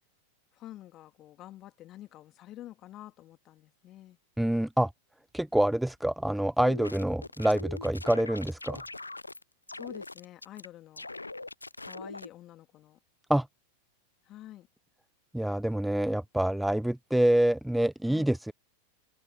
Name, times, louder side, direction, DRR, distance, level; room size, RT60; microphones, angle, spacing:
voice 1, 0.5-4.2 9.7-11.1 11.8-13.0 14.2-14.7 18.1-18.3, left 14 dB, 35° left, 2.6 m, -48 dB
voice 2, 4.4-4.9 5.3-8.8 13.3-13.5 15.3-18.5, right 1 dB, ahead, 0.4 m, -26 dB
sound 1, 6.6-9.4 9.7-10.7 11.0-12.3, left 2 dB, 80° left, 0.5 m, -42 dB
figure-of-eight pair, 90°, 0 cm